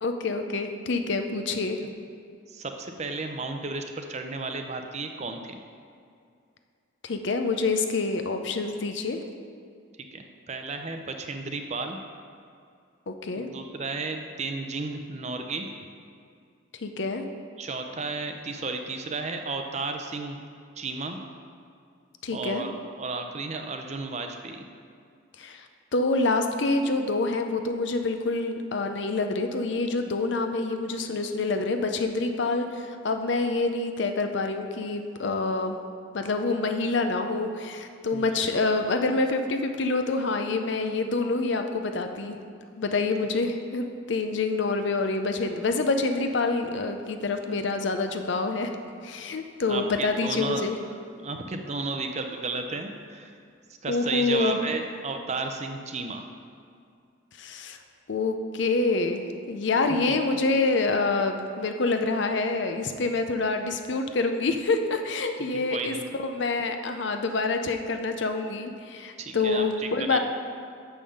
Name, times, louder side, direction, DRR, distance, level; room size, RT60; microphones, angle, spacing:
voice 1, 0.0-1.8 7.0-9.2 13.1-13.5 16.8-17.2 22.2-22.7 25.4-25.7 25.9-35.8 36.1-42.4 42.8-48.7 49.0-50.8 53.9-54.6 57.4-57.8 58.1-70.2, left 3 dB, 60° left, 6 dB, 0.6 m, -27 dB
voice 2, 2.5-5.6 10.1-12.0 13.5-15.7 17.6-20.4 20.8-21.2 22.3-24.6 38.1-38.4 49.7-50.7 51.2-53.3 53.8-56.2 60.1-60.2 65.5-66.0 69.2-70.2, right 3 dB, 35° right, 5 dB, 0.5 m, -33 dB
7.0 x 5.6 x 6.3 m, 2.3 s
head